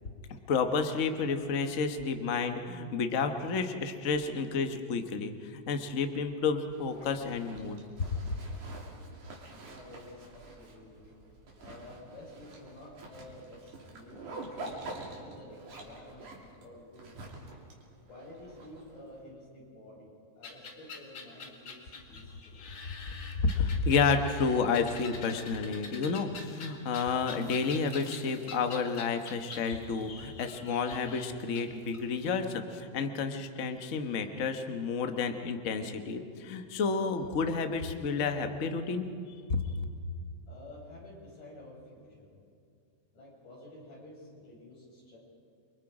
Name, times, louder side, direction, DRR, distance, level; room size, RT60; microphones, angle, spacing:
voice 1, 0.3-8.4 23.4-39.1 39.5-39.6, left 5 dB, 65° left, 6 dB, 0.7 m, -30 dB
Zipper (clothing), 6.7-19.2, right 2 dB, 85° right, 4.4 m, -47 dB
voice 2, 9.6-11.1 11.6-16.3 16.6-17.3 18.1-22.6 40.5-42.3 43.1-45.2, left 1 dB, 90° left, -4 dB, 7.7 m, -51 dB
sound 1, 20.4-32.3, left 4 dB, 45° left, 2.5 m, -46 dB
29.0 x 24.0 x 4.9 m, 2.3 s
omnidirectional pair, 3.4 m